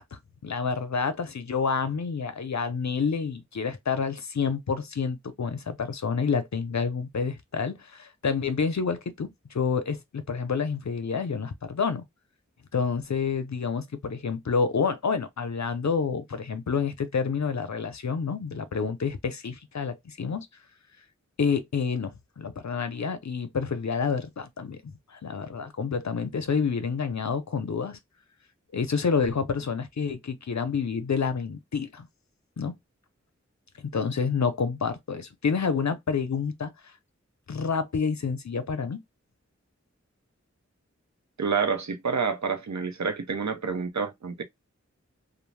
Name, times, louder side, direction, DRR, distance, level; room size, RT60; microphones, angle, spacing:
voice 1, 0.0-12.0 12.7-20.5 21.4-28.0 28.7-32.1 32.6-32.7 33.8-36.7 37.5-39.0, left 5 dB, 70° left, 0.6 m, -28 dB
voice 2, 41.4-44.4, right 5 dB, 70° right, 0.6 m, -28 dB
2.5 x 2.0 x 3.2 m
wide cardioid pair, 55°, 29 cm